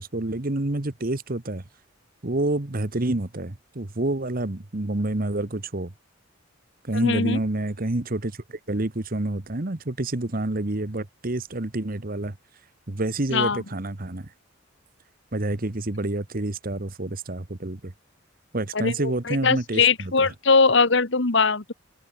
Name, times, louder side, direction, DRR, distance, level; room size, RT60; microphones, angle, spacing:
voice 1, 0.0-1.6 2.2-5.9 6.8-12.3 12.9-14.3 15.3-17.9 18.5-20.3, right 2 dB, 45° right, 1.3 m, -28 dB
voice 2, 7.0-7.4 13.3-13.6 18.8-21.7, left 4 dB, 60° left, 1.6 m, -21 dB
head